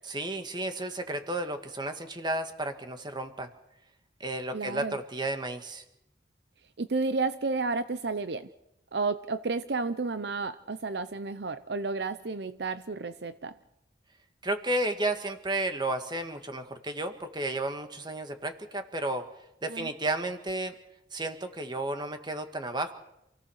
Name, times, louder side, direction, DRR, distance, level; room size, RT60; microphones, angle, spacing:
voice 1, 0.1-3.5 4.2-5.8 14.4-19.3 19.6-20.7 21.1-22.9, right 2 dB, 25° right, 7 dB, 1.9 m, -32 dB
voice 2, 4.5-5.0 6.8-8.5 8.9-13.6 19.7-19.9, right 3 dB, 65° right, 12 dB, 0.7 m, -31 dB
28.0 x 17.0 x 6.5 m, 0.85 s
head